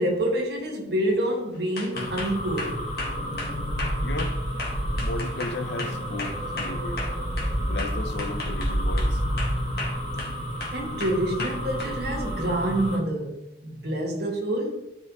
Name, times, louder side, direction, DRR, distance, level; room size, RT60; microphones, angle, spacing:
voice 1, 0.0-2.9 10.7-14.9, right 1 dB, 60° right, 1.9 m, -27 dB
sound 1, 1.8-7.5 7.8-9.1 9.4-10.3 10.6-11.9, left 2 dB, 55° left, 1.9 m, -35 dB
sound 2, 1.9-13.0, equal, 35° left, 3.0 m, -29 dB
voice 2, 4.0-4.4 5.0-7.0 7.6-9.2, left 2 dB, 70° left, 0.9 m, -34 dB
12.5 x 5.6 x 3.1 m
head